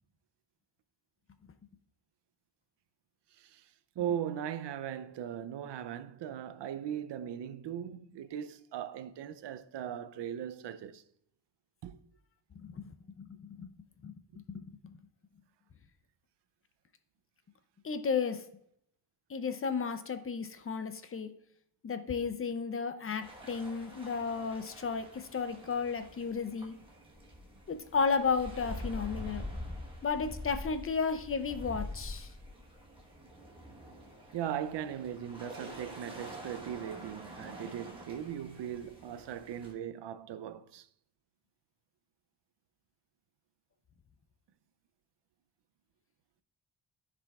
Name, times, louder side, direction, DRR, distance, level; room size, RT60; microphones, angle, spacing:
voice 1, 4.0-11.0 11.8-12.0 34.3-40.9, right 9 dB, 85° right, 0.5 m, -39 dB
voice 2, 12.6-13.7 14.0-14.9 17.8-18.4 19.3-21.3 21.8-26.7 27.7-29.4 30.0-32.3, left 5 dB, 35° left, 0.4 m, -33 dB
sound 1, 23.2-39.7, left 1 dB, 10° right, 1.2 m, -46 dB
14.0 x 4.9 x 2.3 m
wide cardioid pair, 175°, 41 cm